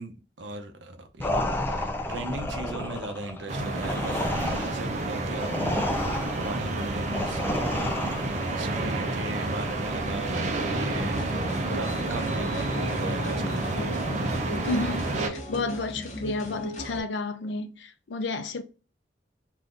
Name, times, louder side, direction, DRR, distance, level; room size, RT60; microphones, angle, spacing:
voice 1, 0.0-13.8, right 2 dB, 85° right, 0.6 m, -39 dB
sound 1, 1.2-8.6, left 1 dB, 10° left, 0.3 m, -31 dB
sound 2, 3.5-15.3, right 2 dB, 40° right, 0.5 m, -30 dB
sound 3, 10.9-17.0, equal, 40° left, 0.8 m, -35 dB
voice 2, 14.7-18.6, left 3 dB, 80° left, 0.5 m, -31 dB
3.6 x 2.6 x 2.4 m
head